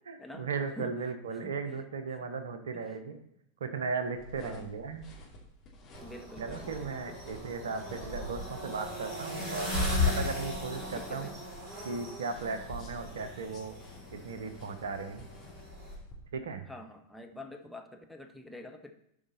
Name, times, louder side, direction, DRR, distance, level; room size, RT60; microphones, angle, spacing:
voice 1, 0.1-3.2 3.6-5.1 6.4-9.7 10.0-11.3 11.8-13.8 14.1-15.2 16.3-16.6, right 4 dB, 65° right, 9 dB, 0.9 m, -36 dB
sound 1, 4.1-16.1, equal, 30° left, 2.7 m, -49 dB
voice 2, 4.4-4.7 6.0-7.2 7.7-7.8 10.9-11.4 16.7-18.9, left 1 dB, ahead, 2 dB, 0.9 m, -46 dB
sound 2, 5.9-15.9, left 2 dB, 25° right, 3.9 m, -37 dB
12.5 x 5.1 x 4.0 m, 0.76 s
figure-of-eight pair, 90°, 0 cm